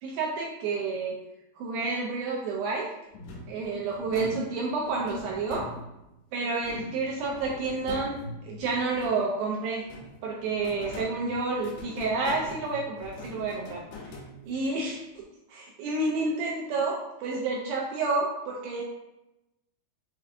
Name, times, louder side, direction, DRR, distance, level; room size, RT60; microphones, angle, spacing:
voice 1, 0.0-1.2 1.6-2.9 3.5-5.6 6.3-8.2 8.4-9.8 10.2-13.8 14.5-15.0 15.5-18.8, right 3 dB, 80° right, -2 dB, 2.2 m, -29 dB
sound 1, 3.1-6.2 6.6-9.4 9.8-14.7, left 2 dB, 80° left, 2.7 m, -43 dB
6.4 x 2.6 x 2.4 m, 0.92 s
omnidirectional pair, 4.6 m